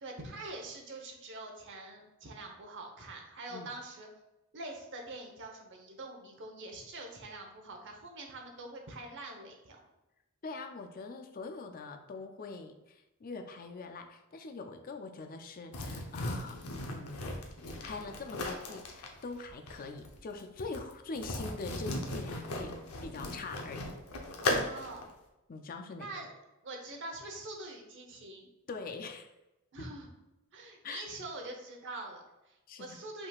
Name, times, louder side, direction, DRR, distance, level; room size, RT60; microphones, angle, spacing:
voice 1, 0.0-4.1 4.5-9.8 24.4-25.0 25.9-26.3 26.6-28.5 29.7-30.1 30.5-33.3, right 2 dB, 55° right, 2 dB, 0.9 m, -44 dB
voice 2, 10.4-16.6 16.9-17.4 17.8-24.0 25.5-26.1 28.7-29.3 30.8-31.0 32.7-33.0, left 3 dB, 40° left, 7 dB, 0.4 m, -43 dB
sound 1, 15.7-25.0, left 1 dB, 90° left, 0.8 m, -37 dB
5.5 x 3.6 x 2.4 m, 0.99 s
head